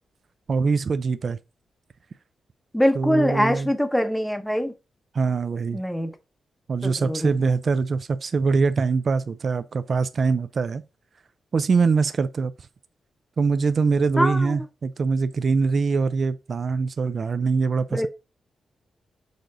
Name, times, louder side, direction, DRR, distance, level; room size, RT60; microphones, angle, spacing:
voice 1, 0.5-1.4 2.9-3.7 5.1-5.8 6.7-10.8 11.5-12.5 13.4-18.1, right 4 dB, 45° right, 0.4 m, -23 dB
voice 2, 2.7-4.7 5.7-6.1 6.8-7.3 14.2-14.6 17.9-18.1, equal, 5° left, 0.8 m, -23 dB
6.6 x 3.9 x 3.9 m
wide cardioid pair, 135°, 0 cm